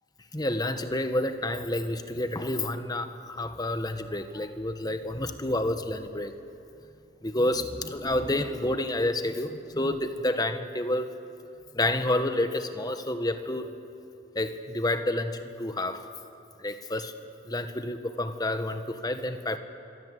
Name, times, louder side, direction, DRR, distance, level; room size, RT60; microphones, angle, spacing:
voice 1, 0.3-6.3 7.2-11.1 11.7-13.7 14.3-16.1 16.6-17.1 17.5-19.6, left 1 dB, 20° left, 9 dB, 1.3 m, -29 dB
27.0 x 24.0 x 8.3 m, 2.8 s
head